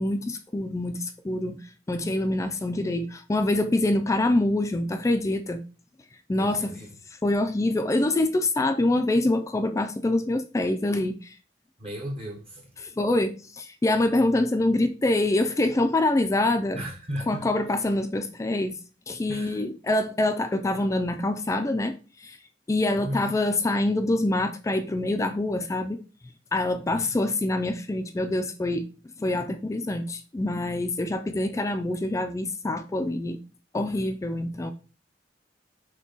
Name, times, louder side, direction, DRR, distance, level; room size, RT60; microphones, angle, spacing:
voice 1, 0.0-1.6 1.9-5.6 6.3-6.7 7.2-11.4 12.8-16.8 17.3-18.8 19.1-21.9 22.2-22.4 22.7-26.0 26.5-28.9 29.2-33.4 33.7-34.7, left 2 dB, 15° left, 0.3 m, -25 dB
voice 2, 6.3-6.9 11.8-12.9 16.7-17.7 19.3-19.6 22.9-23.4 26.9-27.1, equal, 35° right, 1.0 m, -36 dB
6.0 x 2.3 x 3.9 m
head